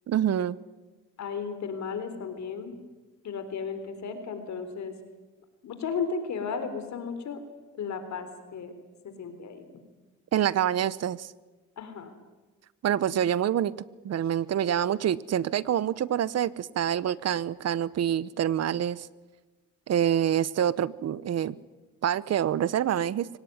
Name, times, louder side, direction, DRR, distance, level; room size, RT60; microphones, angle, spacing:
voice 1, 0.1-0.6 10.3-11.3 12.8-13.7 14.0-19.1 19.9-21.6 22.0-23.3, right 10 dB, 55° right, 19 dB, 0.9 m, -26 dB
voice 2, 1.2-2.8 3.2-4.9 5.6-7.4 7.8-8.7 9.0-9.6 11.8-12.1, left 5 dB, 65° left, 9 dB, 3.8 m, -34 dB
24.0 x 18.0 x 9.5 m, 1.2 s
cardioid pair, 90°, 30 cm